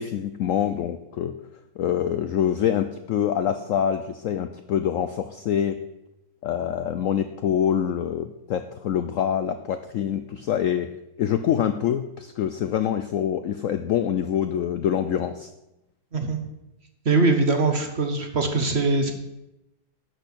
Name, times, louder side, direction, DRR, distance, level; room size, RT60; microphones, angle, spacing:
voice 1, 0.0-1.3 1.8-5.8 6.4-10.9 11.2-15.5, left 9 dB, 75° left, 10 dB, 0.7 m, -25 dB
voice 2, 17.1-19.1, right 3 dB, 45° right, 5 dB, 1.0 m, -22 dB
11.5 x 4.4 x 8.1 m, 0.91 s
omnidirectional pair, 1.9 m